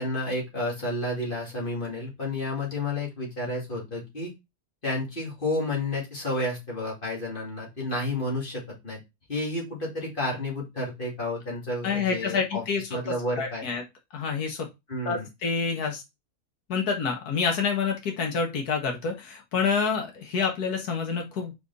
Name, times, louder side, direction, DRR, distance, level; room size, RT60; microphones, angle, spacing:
voice 1, 0.0-4.3 4.8-9.0 9.3-12.6 12.9-13.7 14.9-15.3, left 2 dB, 35° left, -3 dB, 2.5 m, -31 dB
voice 2, 11.8-13.8 14.1-14.7 15.1-16.0 16.7-21.5, left 5 dB, 75° left, 2 dB, 1.9 m, -28 dB
5.0 x 4.9 x 4.0 m, 0.23 s
omnidirectional pair, 1.7 m